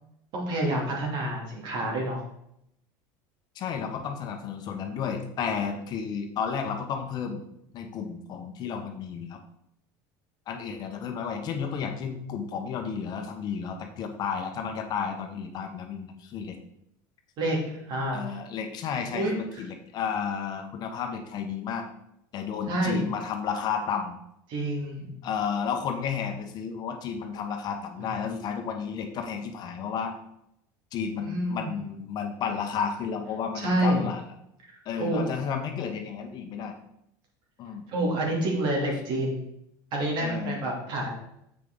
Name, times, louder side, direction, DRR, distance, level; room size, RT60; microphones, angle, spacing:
voice 1, 0.3-2.2 17.4-18.2 19.1-19.4 22.7-23.1 24.5-25.2 31.2-31.7 33.5-34.0 34.6-35.3 37.9-39.4 39.9-41.1, right 1 dB, 55° right, -1 dB, 2.9 m, -28 dB
voice 2, 3.5-7.4 7.7-9.4 10.5-16.6 18.1-21.9 22.3-24.2 25.2-30.2 30.9-34.2 34.8-36.7 37.6-37.9 40.2-40.6, left 6 dB, 45° left, 5 dB, 1.2 m, -32 dB
7.4 x 6.0 x 3.9 m, 0.77 s
supercardioid pair, 120°, 10 cm